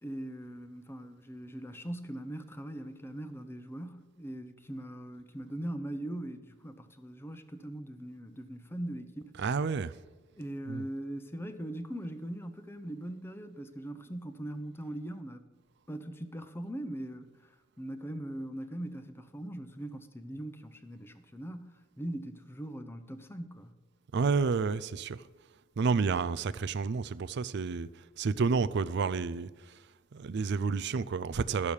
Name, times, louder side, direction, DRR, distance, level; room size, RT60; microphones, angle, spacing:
voice 1, 0.0-9.3 10.4-15.5 15.9-17.4 17.8-23.8, right 1 dB, 10° left, 0.7 m, -40 dB
voice 2, 9.4-9.9 10.7-10.8 24.1-25.2 25.8-27.9 28.2-29.5 30.1-31.7, right 4 dB, 60° right, 0.4 m, -30 dB
12.0 x 6.5 x 7.1 m
head